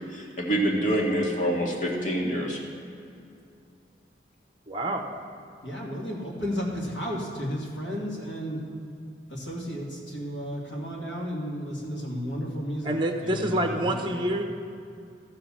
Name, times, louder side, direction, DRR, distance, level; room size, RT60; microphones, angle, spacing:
voice 1, 0.1-2.6, right 1 dB, 45° left, -3 dB, 2.0 m, -26 dB
voice 2, 4.7-5.0 12.8-14.4, right 1 dB, 25° right, 4 dB, 1.0 m, -27 dB
voice 3, 5.6-8.6 9.3-12.9 13.2-14.2, equal, 70° left, -3 dB, 2.3 m, -33 dB
13.5 x 4.8 x 7.3 m, 2.5 s
head